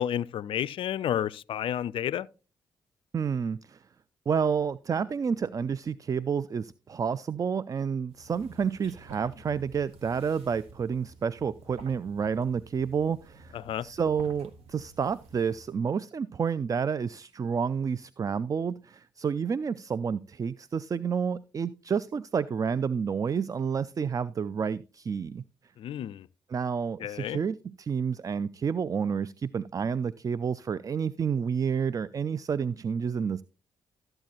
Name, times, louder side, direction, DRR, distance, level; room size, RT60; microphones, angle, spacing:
voice 1, 0.0-2.3 13.6-13.9 25.8-26.3 27.0-27.4, left 10 dB, 55° left, 0.4 m, -31 dB
voice 2, 3.1-3.8 4.3-25.4 26.5-33.4, right 6 dB, 35° right, 0.4 m, -30 dB
sound 1, 8.1-15.8, right 3 dB, 70° right, 1.2 m, -51 dB
13.5 x 7.8 x 2.9 m
hypercardioid pair, 40°, 11 cm